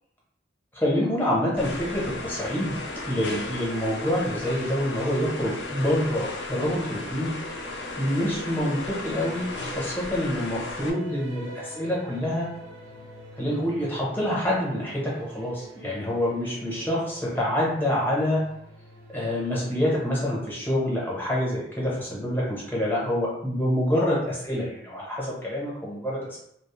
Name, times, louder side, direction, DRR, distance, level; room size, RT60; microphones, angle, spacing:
voice 1, 0.7-2.8 3.0-7.3 8.0-12.5 13.4-18.4 19.1-26.4, left 1 dB, 10° left, -5 dB, 0.7 m, -27 dB
sound 1, 1.6-10.9, left 2 dB, 75° left, 0.4 m, -35 dB
sound 2, 3.8-20.0, equal, 80° right, 0.6 m, -46 dB
2.5 x 2.0 x 3.0 m, 0.74 s
head